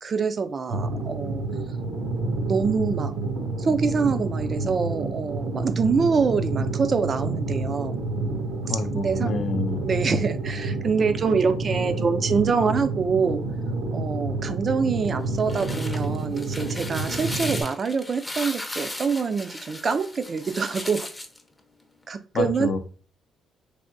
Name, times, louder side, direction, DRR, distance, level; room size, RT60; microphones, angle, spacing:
voice 1, 0.0-1.4 2.5-3.1 3.6-7.9 8.7-9.3 9.8-13.4 13.9-21.1 22.1-22.7, right 5 dB, 45° right, 0.4 m, -25 dB
sound 1, 0.7-17.6, right 2 dB, 85° right, 0.6 m, -29 dB
voice 2, 8.7-9.8 22.3-22.8, left 4 dB, 65° left, 0.5 m, -28 dB
sound 2, 15.3-21.4, left 1 dB, 15° left, 0.6 m, -36 dB
3.4 x 2.7 x 2.5 m
cardioid pair, 90°, 0 cm